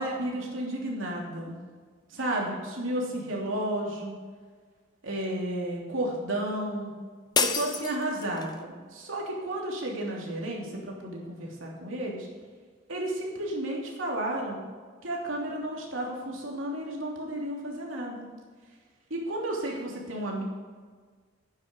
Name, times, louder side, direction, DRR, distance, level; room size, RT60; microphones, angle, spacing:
voice 1, 0.0-1.6 2.1-4.2 5.0-6.9 7.4-12.3 12.9-14.6 15.0-18.3 19.1-20.4, right 1 dB, 90° right, -2 dB, 3.0 m, -32 dB
sound 1, 7.3-8.6, left 5 dB, 20° left, 0.8 m, -29 dB
12.0 x 9.7 x 5.4 m, 1.6 s
head